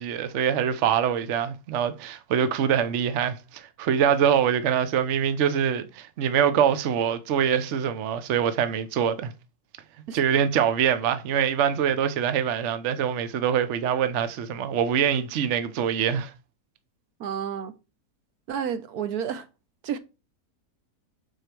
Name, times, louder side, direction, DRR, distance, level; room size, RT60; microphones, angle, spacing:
voice 1, 0.0-9.3 10.1-16.3, right 8 dB, 55° right, 1.0 m, -24 dB
voice 2, 17.2-17.7 18.5-19.5 19.8-20.0, right 8 dB, 75° right, 1.3 m, -30 dB
6.8 x 4.7 x 4.4 m
omnidirectional pair, 1.6 m